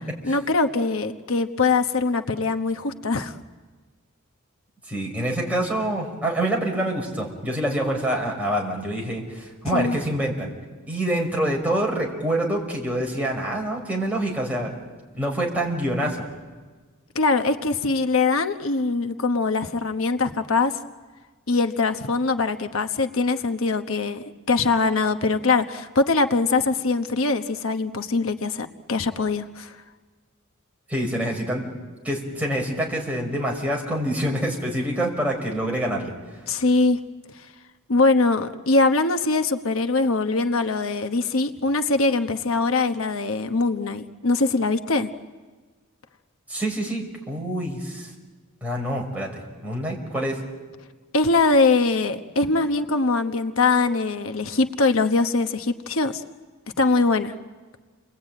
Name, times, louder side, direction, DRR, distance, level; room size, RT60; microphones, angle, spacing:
voice 1, 0.2-3.4 9.7-10.0 17.1-20.8 21.5-29.7 36.5-37.0 37.9-45.1 51.1-56.2 56.8-57.3, left 3 dB, 75° left, 7 dB, 1.1 m, -22 dB
voice 2, 4.9-10.5 10.9-14.7 15.1-16.3 30.9-31.7 32.0-36.1 46.5-48.1 48.6-50.4, right 1 dB, 5° right, -2 dB, 5.7 m, -26 dB
30.0 x 21.5 x 9.1 m, 1.4 s
head